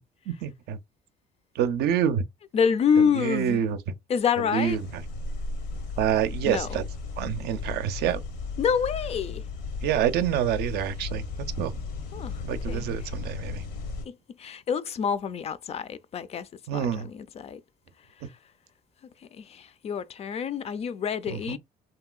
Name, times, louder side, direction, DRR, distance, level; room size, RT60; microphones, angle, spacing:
voice 1, 0.3-0.8 1.6-2.2 3.0-3.8 4.5-5.0 6.0-6.8 7.2-8.2 9.8-11.7 12.4-13.6 16.7-17.1 21.3-21.6, right 9 dB, 75° right, 0.5 m, -27 dB
voice 2, 2.5-3.6 4.1-4.8 6.5-6.8 8.6-9.4 12.1-12.4 12.7-12.9 14.1-17.6 19.3-21.6, left 7 dB, 40° left, 0.4 m, -27 dB
sound 1, 4.7-14.0, left 3 dB, 80° left, 0.8 m, -35 dB
3.0 x 2.7 x 2.3 m
cardioid pair, 110°, 17 cm